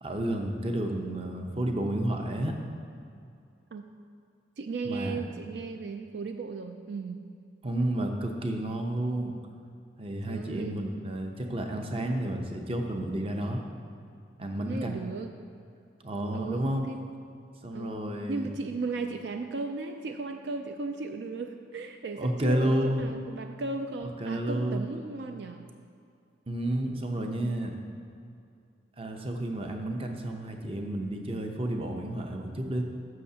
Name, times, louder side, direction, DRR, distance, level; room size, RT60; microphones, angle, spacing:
voice 1, 0.0-2.5 4.8-5.2 7.6-9.4 10.0-13.6 14.4-15.0 16.0-16.8 17.6-18.5 22.2-23.1 24.2-24.9 26.5-27.7 29.0-32.8, right 1 dB, 30° right, 3 dB, 0.7 m, -31 dB
voice 2, 4.6-7.2 10.3-10.8 14.7-15.3 16.3-17.1 17.7-25.7, right 3 dB, 70° right, 6 dB, 0.4 m, -36 dB
12.5 x 6.6 x 2.8 m, 2.5 s
head